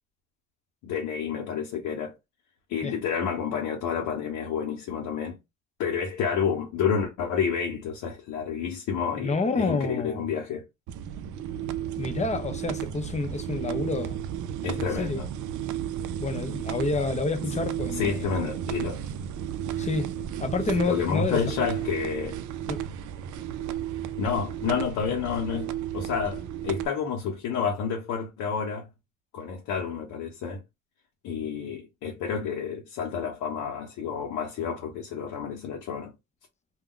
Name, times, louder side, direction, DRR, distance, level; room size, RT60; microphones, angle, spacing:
voice 1, 0.8-2.1 2.7-5.4 5.8-10.6 14.6-15.3 17.9-19.0 20.8-22.4 24.2-28.9 29.3-30.6 31.2-36.1, left 6 dB, 90° left, 0.8 m, -29 dB
voice 2, 9.2-10.2 12.0-14.2 14.8-15.2 16.2-18.3 19.8-20.1 20.4-21.7 22.7-22.8, left 3 dB, 25° left, 0.6 m, -29 dB
sound 1, 10.9-26.9, right 10 dB, 75° right, 0.4 m, -33 dB
2.3 x 2.2 x 3.7 m
cardioid pair, 90°, 30 cm